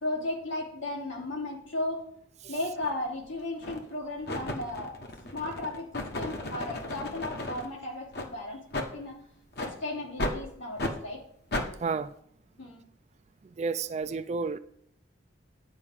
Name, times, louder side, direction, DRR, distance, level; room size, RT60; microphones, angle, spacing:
voice 1, 0.0-2.1 2.4-5.0 5.3-9.2 9.6-11.2 12.6-12.8, left 2 dB, 80° left, 2.9 m, -35 dB
sound 1, 2.8-2.9 3.6-3.9 4.3-7.7 8.1-8.3 8.7-8.9 9.5-9.7 10.2-10.4 10.8-11.0 11.5-11.7, left 1 dB, 55° left, 1.2 m, -34 dB
voice 2, 13.6-14.6, right 4 dB, 35° right, 0.4 m, -30 dB
9.7 x 4.9 x 7.2 m
head